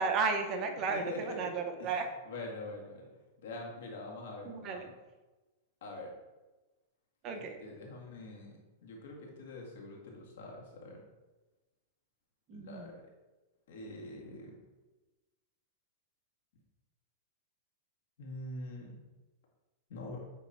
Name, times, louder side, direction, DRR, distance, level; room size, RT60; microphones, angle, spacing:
voice 1, 0.0-2.1 4.4-4.9 7.2-7.6 12.5-12.9, right 4 dB, 35° right, 4 dB, 0.8 m, -33 dB
voice 2, 0.9-1.5 1.8-1.9 2.3-3.0 3.4-4.9 5.8-6.1 7.3-11.0 12.5-13.0 13.7-14.6 18.2-18.9 19.9-20.2, left 2 dB, 75° left, -1 dB, 1.8 m, -44 dB
8.0 x 3.1 x 4.2 m, 1.1 s
supercardioid pair, 140°, 0 cm